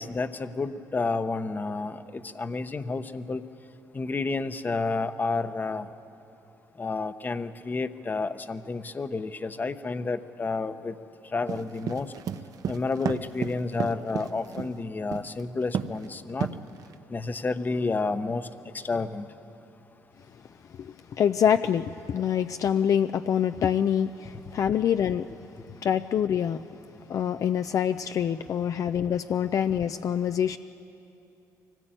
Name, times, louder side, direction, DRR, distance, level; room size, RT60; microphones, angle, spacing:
voice 1, 0.0-3.4 3.9-5.9 6.8-11.0 11.3-12.1 12.7-16.5 17.1-18.5 18.8-19.3, left 3 dB, 25° left, 11 dB, 0.9 m, -30 dB
sound 1, 11.5-14.7 15.1-15.4 15.7-16.0 16.4-16.9, right 8 dB, 60° right, 0.9 m, -31 dB
voice 2, 20.8-25.3 25.8-26.6 27.1-30.6, left 9 dB, 55° left, 9 dB, 0.5 m, -25 dB
23.5 x 18.5 x 9.0 m, 2.9 s
cardioid pair, 95°, 7 cm